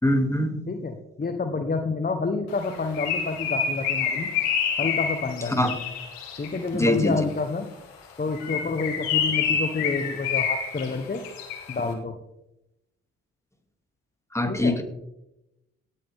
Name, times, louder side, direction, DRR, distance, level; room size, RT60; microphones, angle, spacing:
voice 1, 0.0-0.6 5.6-5.7 6.7-7.2 14.3-14.8, left 1 dB, 10° left, 4 dB, 2.7 m, -23 dB
voice 2, 0.7-4.3 4.8-5.6 6.4-7.7 8.2-11.2 11.7-12.1 14.5-14.7, left 4 dB, 25° left, 6 dB, 1.3 m, -28 dB
Bird, 2.6-6.7 8.3-11.8, left 7 dB, 80° left, 2.1 m, -28 dB
18.0 x 8.7 x 3.8 m, 0.91 s
hypercardioid pair, 40°, 35 cm